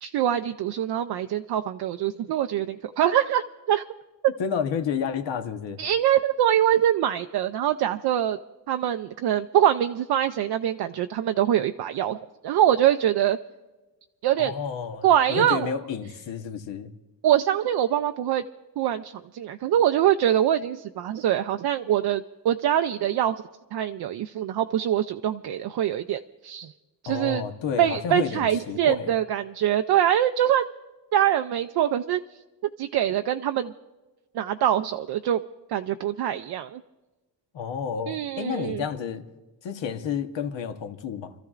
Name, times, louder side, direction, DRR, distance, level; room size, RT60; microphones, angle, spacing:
voice 1, 0.0-3.8 5.8-8.4 8.7-13.4 14.2-14.5 15.0-15.7 17.2-18.4 18.8-23.3 23.7-26.7 27.0-27.4 27.8-30.7 31.1-32.2 32.8-33.7 34.3-35.4 35.7-36.8 38.1-38.8, right 11 dB, 60° right, 8 dB, 0.5 m, -24 dB
voice 2, 4.4-5.8 14.4-16.9 27.1-29.1 37.5-39.2 39.6-41.3, left 7 dB, 75° left, 6 dB, 1.2 m, -30 dB
29.5 x 14.0 x 2.5 m, 1.1 s
cardioid pair, 135°, 44 cm